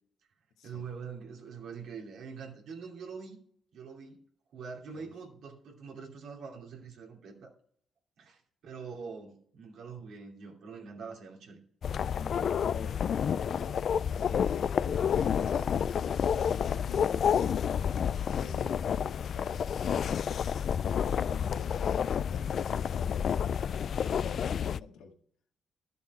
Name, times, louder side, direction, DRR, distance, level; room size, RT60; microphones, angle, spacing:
voice 1, 0.6-3.4 3.7-4.2 4.5-7.5 8.2-11.6, right 5 dB, 75° right, 2.6 m, -44 dB
sound 1, 11.8-24.8, left 8 dB, 55° left, 0.3 m, -29 dB
voice 2, 12.2-13.8 14.1-17.6 18.3-25.2, left 6 dB, 90° left, 1.9 m, -46 dB
12.0 x 7.0 x 4.7 m
cardioid pair, 90°, 0 cm